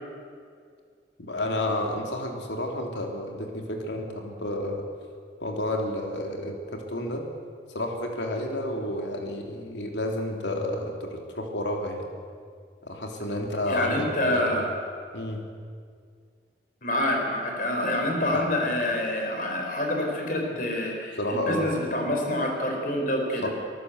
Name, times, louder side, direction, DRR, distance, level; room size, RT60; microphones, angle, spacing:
voice 1, 1.2-4.8 5.4-7.3 7.7-12.0 12.8-14.6 15.1-15.4 18.3-18.5 21.2-21.7 23.4-23.5, left 1 dB, 90° left, 2 dB, 3.3 m, -30 dB
voice 2, 13.7-14.7 16.8-23.5, left 1 dB, 50° left, 1 dB, 4.6 m, -27 dB
24.5 x 14.5 x 8.1 m, 2.1 s
head